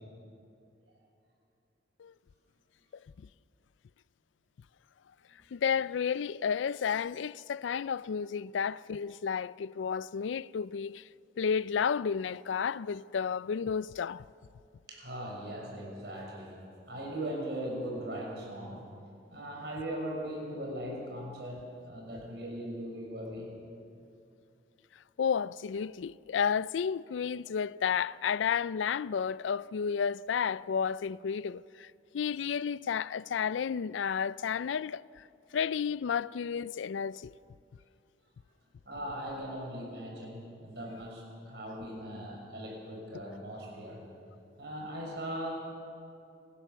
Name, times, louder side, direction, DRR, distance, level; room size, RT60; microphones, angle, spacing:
voice 1, 5.5-11.1 11.4-14.2 25.2-35.2 35.5-37.3, left 7 dB, 85° left, 0.4 m, -32 dB
voice 2, 14.9-16.6 16.9-18.9 19.3-23.5 38.8-44.0 44.6-45.5, right 1 dB, 65° right, 6.4 m, -39 dB
26.5 x 15.5 x 6.9 m
head